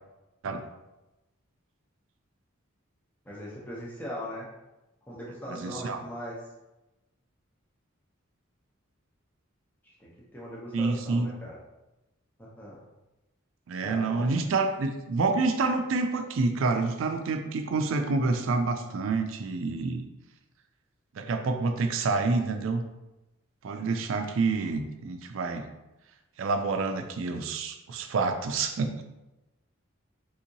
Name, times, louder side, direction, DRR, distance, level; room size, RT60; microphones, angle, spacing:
voice 1, 3.2-4.5 5.1-6.4 9.8-11.6 12.4-12.8 13.8-14.5, equal, 10° left, -6 dB, 0.6 m, -40 dB
voice 2, 5.5-6.0 10.7-11.3 13.7-20.0 21.1-22.8 23.6-25.7 26.4-29.0, right 3 dB, 70° right, 6 dB, 0.4 m, -28 dB
3.5 x 2.8 x 2.7 m, 0.99 s
head